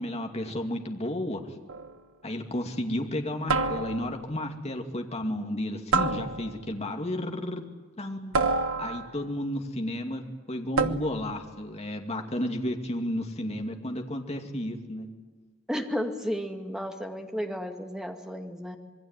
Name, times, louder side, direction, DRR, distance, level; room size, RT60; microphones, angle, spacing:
voice 1, 0.0-1.4 2.2-7.6 8.0-8.4 8.8-15.1, left 1 dB, 30° left, 3 dB, 2.6 m, -32 dB
sound 1, 1.7-2.0 3.5-4.3 5.9-6.7 8.3-9.3 10.8-11.3, right 3 dB, 85° right, 1.3 m, -28 dB
voice 2, 15.7-18.8, equal, 5° right, 4 dB, 2.3 m, -33 dB
27.0 x 21.5 x 9.2 m, 1.3 s
head